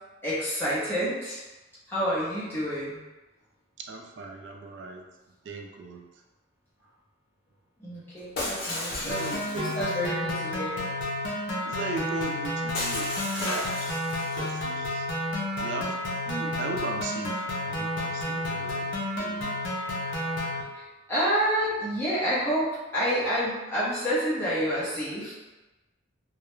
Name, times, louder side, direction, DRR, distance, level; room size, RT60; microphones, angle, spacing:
voice 1, 0.2-1.4 1.9-3.0 7.8-10.8 20.7-22.7 22.9-25.3, equal, 10° left, -11 dB, 0.7 m, -28 dB
voice 2, 3.8-5.0 5.4-6.0 9.0-9.8 11.6-13.1 13.4-13.8 14.2-15.1 15.6-16.0 16.3-18.9 19.2-19.5, right 3 dB, 65° right, 2 dB, 0.3 m, -37 dB
Shatter, 8.4-10.0 12.7-14.6, left 1 dB, 55° left, 0.9 m, -34 dB
sound 1, 9.1-20.6, left 1 dB, 75° left, 0.5 m, -31 dB
2.3 x 2.0 x 3.0 m, 1.1 s
head